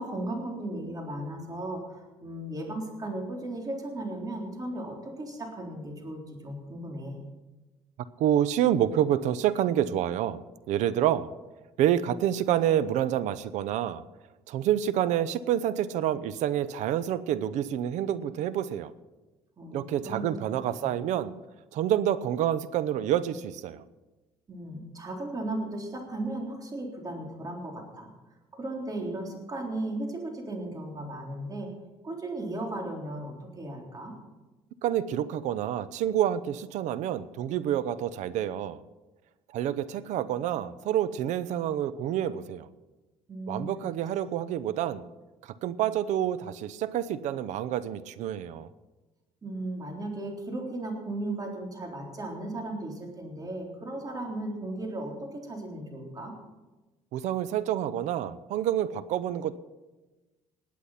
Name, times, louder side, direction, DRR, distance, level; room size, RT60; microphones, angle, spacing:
voice 1, 0.0-7.2 19.6-20.3 20.8-20.9 24.5-28.1 28.5-31.7 32.0-34.1 43.3-43.9 49.4-56.3, right 1 dB, 30° right, 1 dB, 3.8 m, -36 dB
voice 2, 8.2-10.4 10.7-11.3 11.8-14.0 14.5-18.9 19.7-21.3 21.7-23.8 34.8-38.8 39.5-42.7 43.5-45.0 45.6-48.7 57.1-59.6, right 11 dB, 75° right, 16 dB, 0.7 m, -28 dB
19.5 x 8.4 x 5.8 m, 1.2 s
cardioid pair, 90°, 12 cm